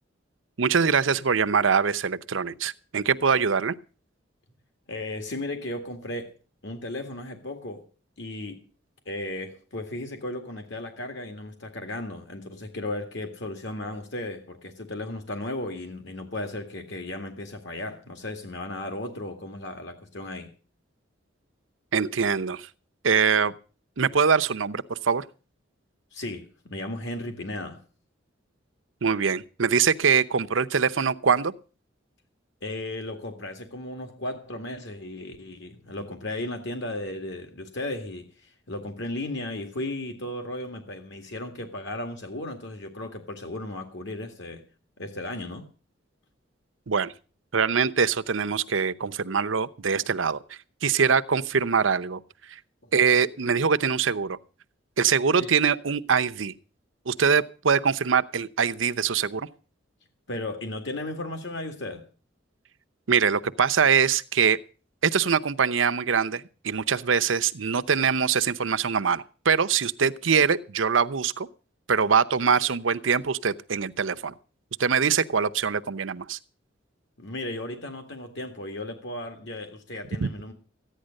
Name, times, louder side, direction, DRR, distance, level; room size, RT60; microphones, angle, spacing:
voice 1, 0.6-3.7 21.9-22.7 23.0-23.5 24.0-25.2 29.0-31.5 46.9-47.1 47.5-50.4 50.8-52.2 52.5-52.6 52.9-54.4 55.0-56.5 57.1-59.5 63.1-64.6 65.0-71.5 71.9-74.3 74.8-76.4 80.2-80.3, right 6 dB, 90° right, 0.7 m, -23 dB
voice 2, 4.9-6.3 6.6-7.8 8.2-8.6 9.1-20.5 26.1-27.8 32.6-44.6 45.0-45.6 52.8-52.9 55.4-55.5 60.3-62.1 77.2-80.5, left 1 dB, 65° left, 2.1 m, -35 dB
14.5 x 10.0 x 6.5 m
head